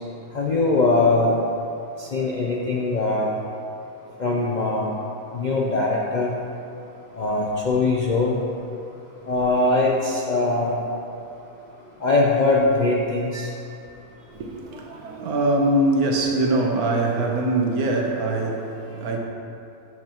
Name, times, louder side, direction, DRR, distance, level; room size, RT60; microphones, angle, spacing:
voice 1, 0.3-1.4 2.0-3.3 4.2-4.9 5.3-6.3 7.2-8.4 9.3-10.7 12.0-13.5, left 2 dB, 55° left, -3 dB, 0.5 m, -21 dB
voice 2, 14.3-19.2, right 2 dB, 75° right, 1 dB, 1.4 m, -23 dB
12.0 x 5.9 x 2.9 m, 2.7 s
omnidirectional pair, 1.6 m